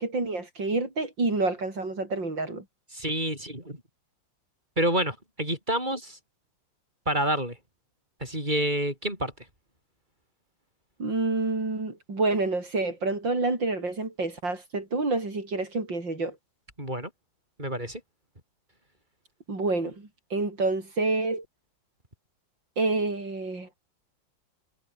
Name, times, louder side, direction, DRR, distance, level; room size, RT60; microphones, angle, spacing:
voice 1, 0.0-2.6 11.0-16.4 19.5-21.4 22.8-23.7, right 3 dB, 70° right, 6.7 m, -28 dB
voice 2, 2.9-3.8 4.8-6.2 7.1-7.6 8.2-9.3 16.8-17.1 17.6-18.0, right 1 dB, 25° right, 7.4 m, -28 dB
omnidirectional pair, 2.1 m